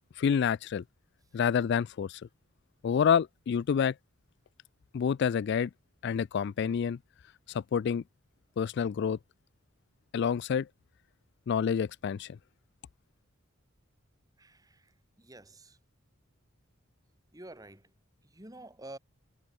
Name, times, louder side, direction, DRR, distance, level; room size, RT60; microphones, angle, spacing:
voice 1, 0.2-0.8 1.3-2.2 2.8-3.9 4.9-5.7 6.0-7.0 7.5-8.0 8.6-9.2 10.1-10.7 11.5-12.4, left 7 dB, 55° left, 0.3 m, -28 dB
voice 2, 14.4-15.8 17.3-19.0, right 1 dB, 15° right, 2.8 m, -50 dB
head